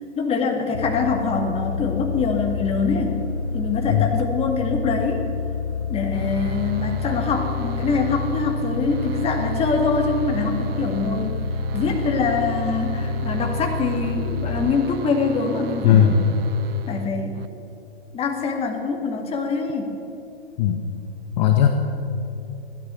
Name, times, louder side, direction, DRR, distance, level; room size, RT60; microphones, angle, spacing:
voice 1, 0.2-3.2 3.5-5.2 5.9-11.4 11.7-16.1 16.9-17.4 18.1-20.0, left 4 dB, 20° left, 2 dB, 2.0 m, -24 dB
sound 1, 0.7-14.7, left 5 dB, 90° left, 0.9 m, -28 dB
sound 2, 6.1-17.5, right 13 dB, 65° right, 0.7 m, -35 dB
voice 2, 15.8-16.3 20.6-20.8 21.4-21.7, left 9 dB, 45° left, 4 dB, 1.2 m, -17 dB
16.0 x 12.5 x 7.0 m, 2.8 s
hypercardioid pair, 125°, 32 cm